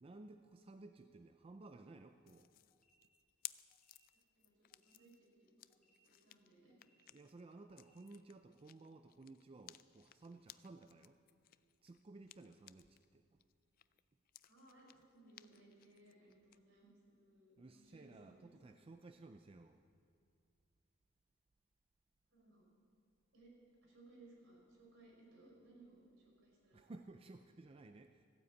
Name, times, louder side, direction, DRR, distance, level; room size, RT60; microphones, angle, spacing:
voice 1, 0.0-2.5 7.1-11.2 11.8-13.2 17.6-19.8 26.7-28.3, right 2 dB, 30° right, 7 dB, 0.4 m, -56 dB
sound 1, 2.3-13.1 13.4-16.6, left 15 dB, 45° left, 0.3 m, -58 dB
sound 2, 2.7-2.9 3.7-3.9 4.7-4.9 5.7-5.9 6.7-6.9 7.7-7.9, left 2 dB, ahead, 2.1 m, -79 dB
voice 2, 4.1-6.7 14.4-18.8 22.3-22.6 23.3-23.5 23.8-26.8, right 2 dB, 70° right, -2 dB, 5.0 m, -64 dB
15.0 x 9.5 x 8.3 m, 2.3 s
head